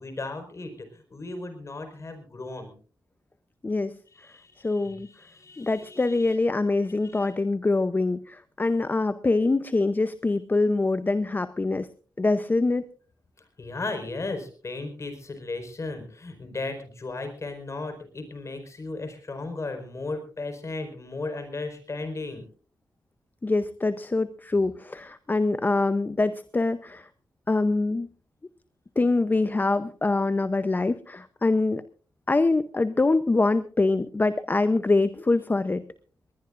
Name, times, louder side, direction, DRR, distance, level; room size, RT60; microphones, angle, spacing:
voice 1, 0.0-2.7 4.1-7.3 13.6-22.4, left 3 dB, 40° left, 7 dB, 4.7 m, -36 dB
voice 2, 4.6-5.1 5.6-11.9 12.2-12.8 23.4-27.1 27.5-28.1 29.0-31.8 32.3-35.9, left 3 dB, 25° left, 13 dB, 0.7 m, -24 dB
21.0 x 20.0 x 2.5 m, 0.40 s
wide cardioid pair, 100°, 7 cm